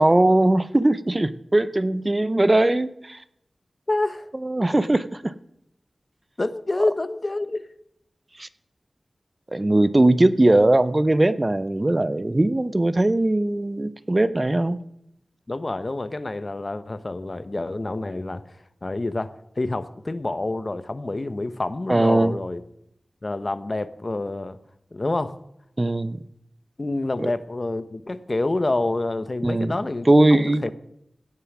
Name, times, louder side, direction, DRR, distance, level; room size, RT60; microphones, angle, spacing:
voice 1, 0.0-3.2 4.4-5.3 8.4-8.5 9.5-14.8 21.9-22.3 25.8-26.2 27.2-27.3 29.4-29.7 30.1-30.7, right 1 dB, 30° right, 14 dB, 0.6 m, -20 dB
voice 2, 3.9-4.3 6.4-7.6 15.5-18.4 18.8-22.6 23.2-24.6 24.9-25.3 26.8-30.1 30.3-30.7, left 2 dB, 45° left, 13 dB, 0.8 m, -27 dB
16.5 x 7.0 x 6.0 m, 0.79 s
cardioid pair, 45°, 0 cm